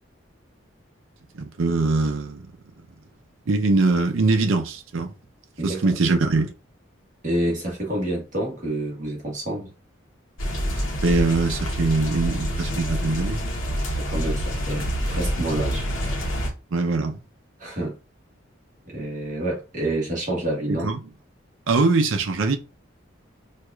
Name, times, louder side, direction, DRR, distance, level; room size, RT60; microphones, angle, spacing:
voice 1, 1.3-2.4 3.5-5.1 5.6-6.5 11.0-13.4 16.7-17.2 20.8-21.0 21.7-22.6, right 3 dB, 80° right, 0.5 m, -22 dB
voice 2, 5.6-5.9 7.2-9.7 13.9-15.9 17.6-18.0 18.8-20.9, right 1 dB, 40° right, 1.2 m, -28 dB
sound 1, 10.4-16.5, equal, 80° left, 0.9 m, -27 dB
4.6 x 2.4 x 2.3 m
head